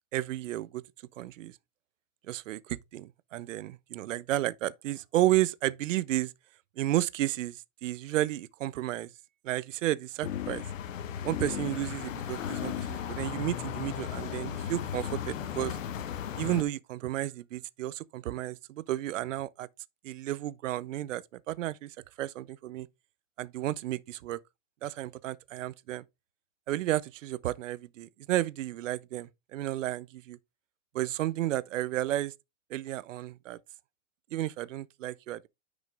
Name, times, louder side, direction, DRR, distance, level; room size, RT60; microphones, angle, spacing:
voice 1, 0.1-0.8 1.2-1.6 2.3-6.3 6.8-9.1 9.4-10.6 11.2-15.8 16.4-19.7 20.0-22.9 23.4-24.4 24.8-26.0 26.7-30.4 30.9-32.3 32.7-33.6 34.3-35.5, right 14 dB, 75° right, 0.7 m, -32 dB
sound 1, 10.2-16.6, left 9 dB, 85° left, 1.4 m, -36 dB
9.5 x 5.3 x 3.3 m
supercardioid pair, 170°, 38 cm